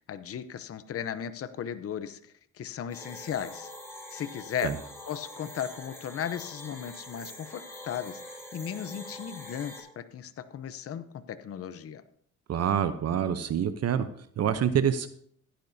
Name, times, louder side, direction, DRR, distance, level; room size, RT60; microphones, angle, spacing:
voice 1, 0.1-3.7 4.1-4.7 5.1-12.0, left 9 dB, 50° left, 12 dB, 0.8 m, -36 dB
sound 1, 2.9-9.8, left 1 dB, 10° left, 4.2 m, -45 dB
voice 2, 12.5-14.1 14.4-15.1, right 8 dB, 55° right, 11 dB, 0.8 m, -26 dB
15.5 x 10.0 x 2.7 m, 0.63 s
cardioid pair, 90°, 30 cm